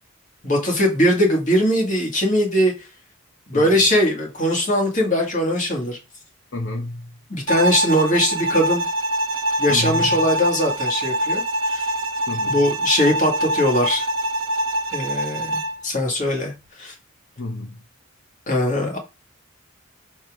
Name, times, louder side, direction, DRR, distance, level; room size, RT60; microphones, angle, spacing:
voice 1, 0.4-2.7 3.5-6.0 7.3-8.8 9.6-11.4 11.7-11.9 12.5-14.1 14.9-16.5 16.8-16.9 18.5-19.0, equal, 35° left, 1.9 m, -20 dB
voice 2, 3.5-3.8 6.5-7.1 9.7-10.1 12.3-12.7 17.4-17.8, left 2 dB, 55° left, 1.0 m, -30 dB
Bowed string instrument, 7.5-15.8, right 1 dB, 65° right, 0.9 m, -24 dB
6.5 x 4.2 x 3.6 m
head